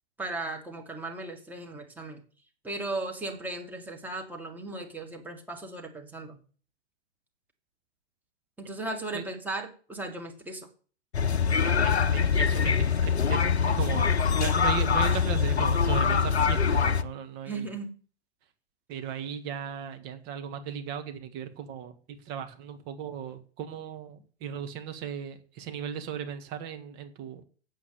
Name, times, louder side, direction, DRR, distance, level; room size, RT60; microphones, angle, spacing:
voice 1, 0.2-2.2 2.6-6.4 8.6-10.7 17.4-17.9, right 2 dB, 5° right, 2 dB, 1.8 m, -36 dB
sound 1, 11.1-17.0, left 6 dB, 75° left, 0.9 m, -24 dB
voice 2, 11.5-17.6 18.9-27.4, right 8 dB, 30° right, 7 dB, 1.6 m, -37 dB
8.3 x 7.5 x 7.6 m, 0.41 s
figure-of-eight pair, 120°, 33 cm